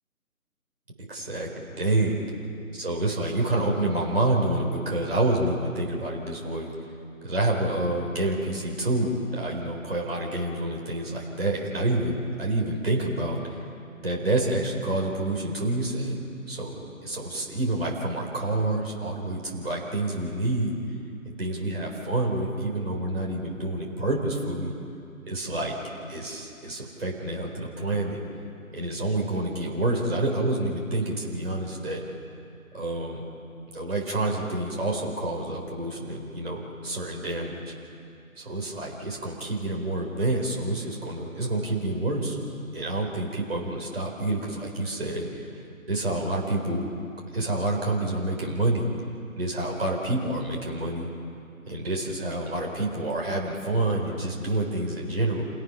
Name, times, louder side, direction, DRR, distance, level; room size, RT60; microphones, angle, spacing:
voice 1, 1.0-1.5 1.8-2.2 2.8-6.7 7.2-13.6 14.0-16.2 16.5-20.8 21.4-24.7 25.3-25.8 26.1-28.2 28.7-32.0 32.7-33.2 33.7-37.7 38.4-42.4 42.7-45.5 45.9-46.9 47.3-48.9 49.4-51.1 51.7-55.4, right 2 dB, 45° right, -2 dB, 4.4 m, -28 dB
29.5 x 17.5 x 5.9 m, 2.5 s
figure-of-eight pair, 160°, 43 cm